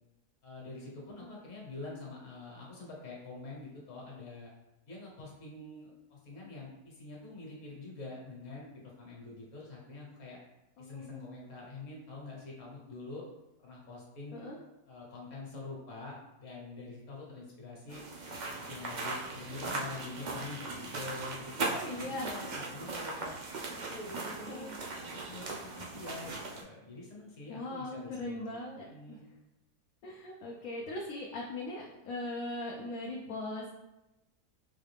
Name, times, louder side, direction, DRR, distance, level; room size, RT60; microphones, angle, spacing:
voice 1, 0.4-4.5 4.9-10.4 10.8-13.2 13.6-14.5 14.9-18.0 18.7-23.3 23.7-28.6 28.9-29.3, left 3 dB, 55° left, -3 dB, 1.4 m, -46 dB
voice 2, 1.1-1.4 10.8-11.3 14.3-14.6 21.7-22.3 24.5-24.7 27.5-29.2 30.0-33.7, left 2 dB, 70° left, -2 dB, 1.0 m, -40 dB
sound 1, 17.9-26.6, right 3 dB, 85° right, 0.4 m, -39 dB
4.7 x 2.4 x 3.4 m, 0.95 s
omnidirectional pair, 1.7 m